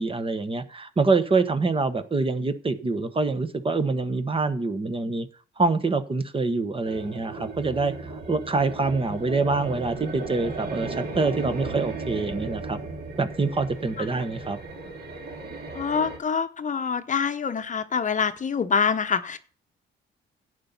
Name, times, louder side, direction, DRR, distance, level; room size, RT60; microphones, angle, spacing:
voice 1, 0.0-5.3 5.6-12.8 13.2-14.6, right 3 dB, 25° right, 1.1 m, -25 dB
sound 1, 6.8-16.2, right 3 dB, 50° right, 2.8 m, -36 dB
voice 2, 15.7-19.4, left 6 dB, 40° left, 0.8 m, -26 dB
11.5 x 8.1 x 5.7 m
cardioid pair, 90°, 20 cm